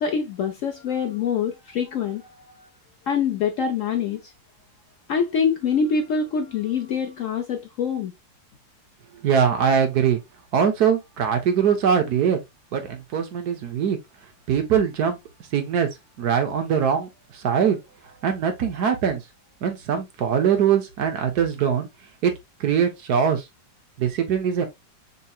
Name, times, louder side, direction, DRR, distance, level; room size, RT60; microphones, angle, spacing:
voice 1, 0.0-2.3 3.1-4.2 5.1-8.1, left 6 dB, 75° left, 0.7 m, -25 dB
voice 2, 9.2-10.2 10.5-12.4 12.7-14.0 14.5-15.2 15.5-15.9 16.2-17.1 17.3-17.8 18.2-19.2 19.6-21.9 22.2-22.3 22.6-23.4 24.0-24.7, right 7 dB, 60° right, 1.4 m, -22 dB
5.6 x 3.1 x 2.3 m
omnidirectional pair, 2.0 m